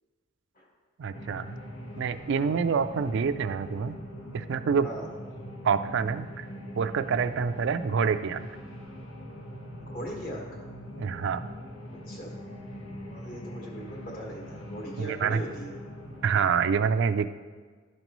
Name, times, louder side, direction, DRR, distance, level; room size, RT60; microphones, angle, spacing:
voice 1, 1.0-1.5 2.0-4.0 4.3-4.9 5.6-6.5 6.8-8.4 11.0-11.4 15.0-15.4 16.2-17.3, right 6 dB, 60° right, 11 dB, 0.3 m, -26 dB
sound 1, 1.1-16.5, equal, 90° left, 1.2 m, -42 dB
voice 2, 9.8-10.6 12.1-12.3 13.0-15.7, equal, 45° left, -2 dB, 1.6 m, -39 dB
11.5 x 5.3 x 3.0 m, 1.5 s
head